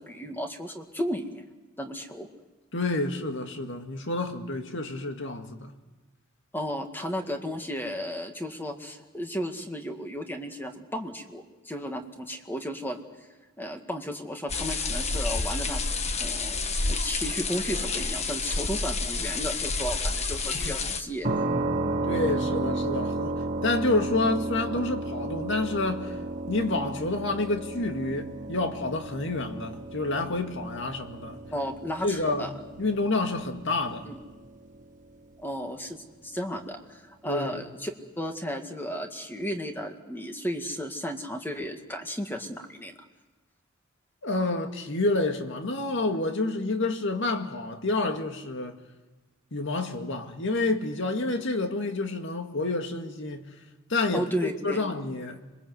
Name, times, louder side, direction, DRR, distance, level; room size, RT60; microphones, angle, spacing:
voice 1, 0.0-1.4 1.8-2.3 6.5-13.0 13.6-15.9 16.2-16.6 16.9-21.3 31.5-32.5 34.0-34.2 35.4-43.0 54.1-54.8, equal, 10° left, 2.0 m, -34 dB
voice 2, 2.7-5.7 20.7-20.8 22.0-26.2 26.5-31.4 32.0-34.1 37.2-37.6 44.2-48.7 49.5-53.5 53.9-55.4, left 2 dB, 65° left, 2.1 m, -29 dB
sound 1, 14.5-21.0, left 3 dB, 35° left, 1.3 m, -29 dB
sound 2, 21.2-34.9, right 2 dB, 40° right, 1.6 m, -33 dB
26.0 x 22.5 x 8.0 m
head